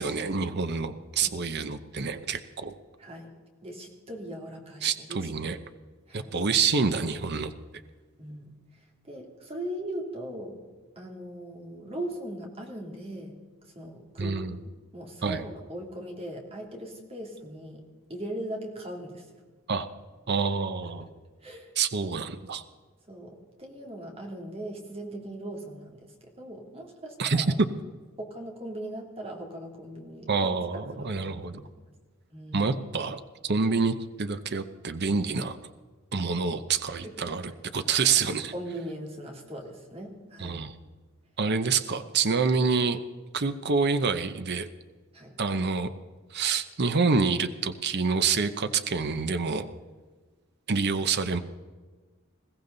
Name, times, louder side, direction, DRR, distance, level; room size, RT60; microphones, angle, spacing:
voice 1, 0.0-2.7 4.8-5.6 6.1-7.5 14.2-14.6 15.2-15.4 19.7-19.9 20.3-21.1 21.8-22.6 27.2-27.4 30.3-31.6 32.5-35.6 36.1-37.4 37.7-38.5 40.4-40.7 41.4-43.0 43.3-44.7 45.4-45.9 46.3-49.7 50.7-51.4, right 5 dB, 50° right, 10 dB, 0.8 m, -27 dB
voice 2, 3.6-5.5 6.1-6.3 8.2-10.6 10.9-13.4 13.6-14.5 14.9-17.8 18.1-19.3 20.3-20.4 20.8-20.9 21.4-21.7 23.1-27.6 28.2-30.5 30.9-31.7 32.3-32.6 37.0-37.1 38.0-38.1 38.5-40.7 45.1-45.4, right 1 dB, 25° right, 0 dB, 3.1 m, -39 dB
21.0 x 16.0 x 4.0 m, 1.3 s
head